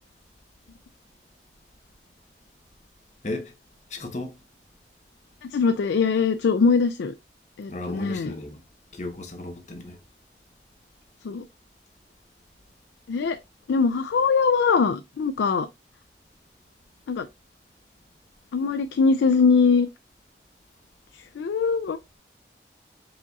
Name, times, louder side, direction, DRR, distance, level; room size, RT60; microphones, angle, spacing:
voice 1, 3.9-4.4 7.7-8.6 8.9-10.0, left 2 dB, 40° left, 0.9 m, -34 dB
voice 2, 5.5-7.1 7.6-8.3 11.2-11.4 13.1-13.4 13.7-15.7 17.1-17.3 18.5-19.9 21.4-22.0, left 5 dB, 85° left, 0.3 m, -22 dB
4.9 x 4.0 x 2.3 m
head